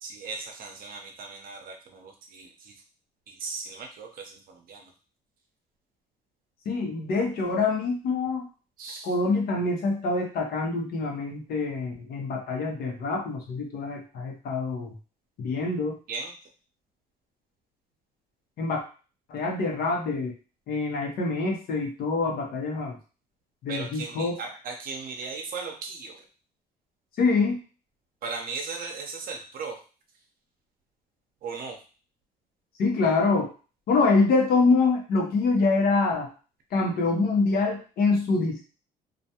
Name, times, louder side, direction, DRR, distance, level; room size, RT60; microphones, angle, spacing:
voice 1, 0.2-2.5 3.4-4.1 4.7-4.8 8.8-9.0 16.1-16.3 23.7-26.1 28.2-29.8 31.4-31.8, right 4 dB, 60° right, 3 dB, 0.7 m, -36 dB
voice 2, 6.7-8.5 9.0-14.9 15.4-16.0 18.6-18.8 19.3-20.3 20.7-23.0 23.6-24.4 27.2-27.6 32.8-33.5 33.9-36.3 36.7-38.6, left 3 dB, 65° left, 0 dB, 0.8 m, -25 dB
2.4 x 2.2 x 2.8 m, 0.35 s
cardioid pair, 110°, 17 cm